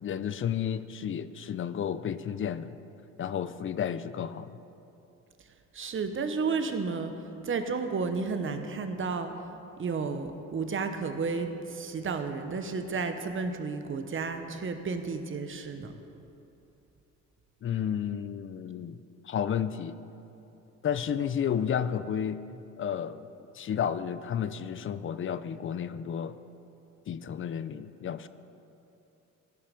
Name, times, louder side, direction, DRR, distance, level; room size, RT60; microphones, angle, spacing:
voice 1, 0.0-2.7 3.2-4.5 17.6-20.0 20.8-22.4 22.8-23.3 23.5-26.4 27.1-28.3, left 8 dB, 40° left, 13 dB, 0.5 m, -32 dB
voice 2, 5.7-7.1 7.4-9.3 9.8-15.9, right 4 dB, 40° right, 7 dB, 1.0 m, -32 dB
16.0 x 5.8 x 5.1 m, 2.8 s
cardioid pair, 85°, 31 cm